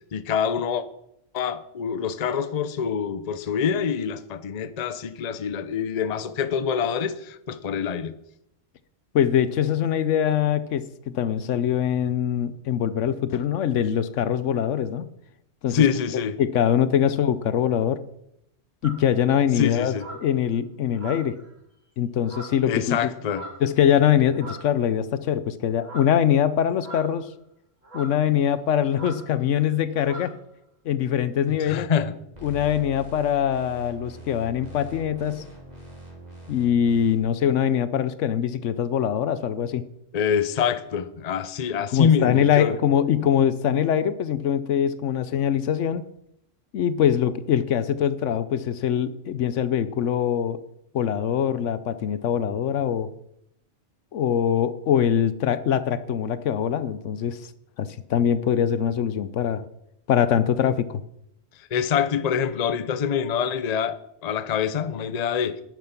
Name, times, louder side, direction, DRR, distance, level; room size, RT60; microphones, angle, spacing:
voice 1, 0.1-0.8 1.3-8.1 15.7-16.4 19.6-20.1 22.6-23.4 31.7-32.1 40.1-42.8 61.7-64.0 64.2-65.6, left 7 dB, 40° left, 0.6 m, -25 dB
voice 2, 9.1-15.1 15.6-15.8 16.4-18.0 18.8-19.9 20.2-21.4 22.0-23.1 23.6-27.3 27.9-30.3 30.9-31.9 32.4-35.4 36.5-39.8 41.9-46.0 46.7-50.6 50.9-53.1 54.1-57.4 57.8-59.6 60.1-61.0, left 9 dB, 70° left, 1.0 m, -23 dB
sound 1, 18.8-19.1 19.9-20.3 20.9-21.5 22.2-22.7 23.3-23.7 24.3-24.8 25.8-26.2 26.8-27.3 27.8-28.2 28.9-29.3 29.5-29.7 30.0-30.3, right 1 dB, 75° right, 3.1 m, -40 dB
sound 2, 32.3-37.1, right 1 dB, 30° right, 4.2 m, -43 dB
10.5 x 9.3 x 5.9 m
omnidirectional pair, 1.3 m